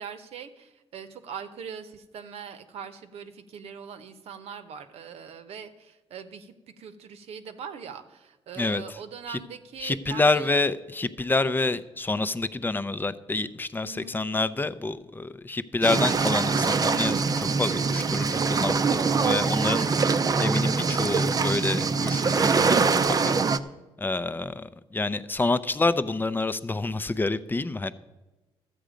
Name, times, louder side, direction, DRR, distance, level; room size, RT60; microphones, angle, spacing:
voice 1, 0.0-10.5 13.8-14.2 19.8-20.2, right 7 dB, 75° right, 9 dB, 1.0 m, -41 dB
voice 2, 9.8-19.9 20.4-23.3 24.0-27.9, left 3 dB, 20° left, 14 dB, 0.5 m, -28 dB
sound 1, 15.8-23.6, right 4 dB, 35° right, 0.6 m, -23 dB
12.5 x 8.2 x 5.1 m, 1.1 s
cardioid pair, 85°, 11 cm